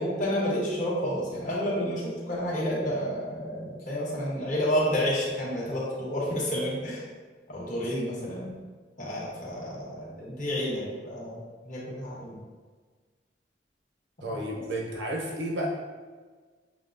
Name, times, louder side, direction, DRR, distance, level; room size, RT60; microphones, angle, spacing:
voice 1, 0.0-7.0 7.5-8.5 9.0-12.4 14.3-14.4, equal, 45° left, -6 dB, 1.3 m, -30 dB
voice 2, 14.2-15.7, right 1 dB, 80° right, -2 dB, 0.9 m, -32 dB
7.1 x 2.4 x 2.5 m, 1.5 s
head